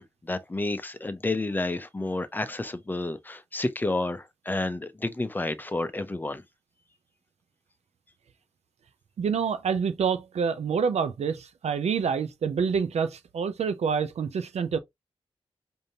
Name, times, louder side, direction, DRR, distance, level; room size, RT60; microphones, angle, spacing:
voice 1, 0.0-6.4, left 2 dB, 15° left, 0.5 m, -30 dB
voice 2, 9.2-14.8, right 6 dB, 75° right, 0.5 m, -27 dB
5.1 x 2.6 x 2.8 m
wide cardioid pair, 125°, 11 cm